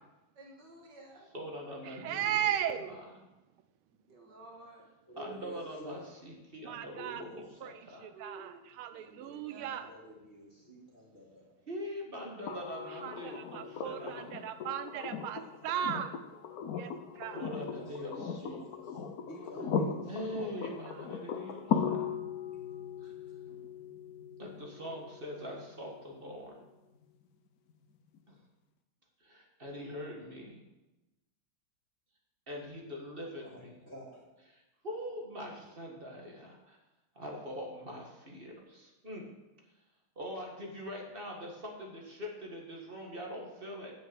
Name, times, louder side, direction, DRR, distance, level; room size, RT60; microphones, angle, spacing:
voice 1, 0.4-1.3 2.5-3.0 4.1-4.9 8.1-8.6 8.9-9.9, right 2 dB, 55° right, 1 dB, 2.0 m, -52 dB
voice 2, 1.3-3.0 5.1-8.1 11.7-14.5 17.3-18.1 18.4-18.7 20.1-22.0 23.0-23.1 24.4-26.6 28.3-28.4 29.2-30.6 32.5-33.7 34.5-36.8 37.1-39.3 40.1-43.9, equal, 30° right, 0 dB, 1.7 m, -43 dB
voice 3, 2.0-2.9 6.6-7.2 7.6-7.7 8.0-9.9 13.0-16.1 16.8-16.9 17.2-17.4 20.3-20.5, right 10 dB, 80° right, 10 dB, 1.5 m, -36 dB
voice 4, 5.1-6.1 6.9-7.8 9.0-11.4 17.5-20.3 22.3-23.8 33.4-34.2, equal, 30° left, -4 dB, 2.9 m, -49 dB
sound 1, 12.5-26.4 28.1-28.2, left 6 dB, 60° left, 1.0 m, -38 dB
8.7 x 6.4 x 7.8 m, 1.0 s
omnidirectional pair, 2.3 m